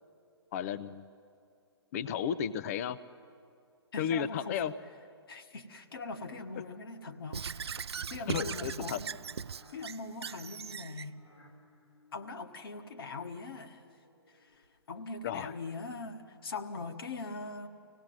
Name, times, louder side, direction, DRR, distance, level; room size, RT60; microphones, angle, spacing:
voice 1, 0.5-1.0 1.9-3.0 4.0-4.7 8.3-9.0 15.2-15.5, left 8 dB, 35° left, 15 dB, 0.5 m, -33 dB
voice 2, 3.9-4.7 5.3-9.1 9.7-11.2 12.1-13.8 14.3-17.7, left 3 dB, 60° left, 6 dB, 1.4 m, -42 dB
sound 1, 5.9-15.0, left 1 dB, 85° left, 2.7 m, -62 dB
Squeak / Writing, 7.3-11.1, right 7 dB, 70° right, 0.4 m, -39 dB
25.5 x 17.5 x 7.6 m, 2.4 s
figure-of-eight pair, 130°, 14 cm